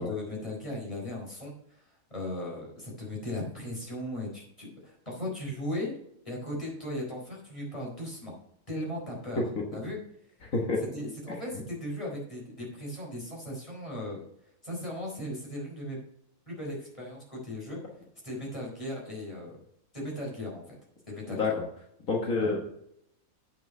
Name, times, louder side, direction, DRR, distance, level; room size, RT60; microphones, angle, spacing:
voice 1, 0.0-1.8 2.1-6.0 6.2-8.4 8.7-9.4 9.7-10.0 10.9-14.2 14.6-16.0 16.5-17.8 18.2-19.5 19.9-20.6 21.1-21.4 22.4-22.5, left 1 dB, 20° left, -3 dB, 4.5 m, -37 dB
voice 2, 10.4-10.8 11.3-11.4 21.3-21.5 22.1-22.6, left 3 dB, 70° left, -1 dB, 1.9 m, -28 dB
8.8 x 6.3 x 5.5 m, 0.73 s
omnidirectional pair, 1.5 m